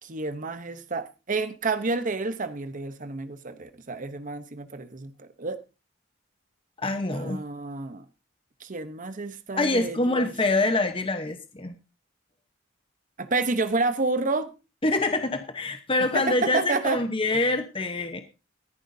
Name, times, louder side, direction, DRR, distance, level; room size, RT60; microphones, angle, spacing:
voice 1, 0.0-5.6 7.1-8.0 8.6-10.3 13.2-14.5 16.1-17.0, right 3 dB, 45° right, 0.9 m, -29 dB
voice 2, 6.8-7.4 9.5-11.7 14.8-18.2, left 2 dB, 30° left, 1.0 m, -25 dB
18.5 x 10.5 x 2.7 m
head